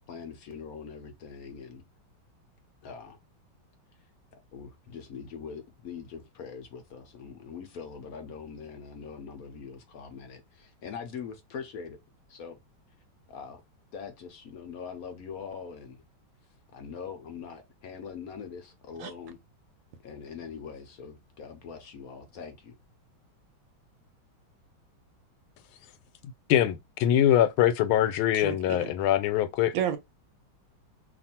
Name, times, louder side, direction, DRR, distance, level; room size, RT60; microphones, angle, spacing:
voice 1, 0.1-1.8 2.8-3.2 4.0-4.1 4.5-12.0 12.3-12.6 13.3-13.6 13.9-16.0 16.7-19.4 20.0-22.8, left 6 dB, 70° left, 0.8 m, -42 dB
voice 2, 26.5-29.7, left 11 dB, 90° left, 1.4 m, -23 dB
voice 3, 28.3-28.9 29.7-30.0, right 9 dB, 75° right, 1.3 m, -31 dB
3.0 x 2.6 x 4.1 m
omnidirectional pair, 2.2 m